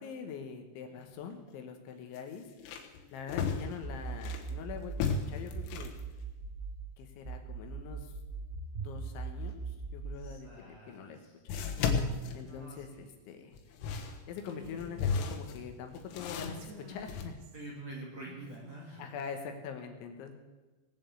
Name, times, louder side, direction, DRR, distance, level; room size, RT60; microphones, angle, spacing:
voice 1, 0.0-2.5 3.1-5.9 7.0-8.1 8.8-11.2 11.4-11.6 12.3-13.6 14.0-17.3 19.0-20.3, left 6 dB, 70° left, 5 dB, 3.3 m, -44 dB
sound 1, 1.0-1.1 1.5-1.6 2.1-4.5 4.9-6.0 10.3-10.4 11.5-13.1 13.5-17.2, left 5 dB, 90° left, 4.1 m, -35 dB
sound 2, 3.8-6.8 7.2-10.3, right 4 dB, 20° right, 1.9 m, -40 dB
voice 2, 10.2-11.3 12.5-13.0 17.5-19.1, right 2 dB, 50° right, -3 dB, 2.1 m, -47 dB
Female speech woman speaking, 14.4-15.1 16.2-17.7 18.2-19.1, left 1 dB, 75° right, 4.0 m, -50 dB
19.5 x 7.4 x 8.3 m, 1.2 s
omnidirectional pair, 5.9 m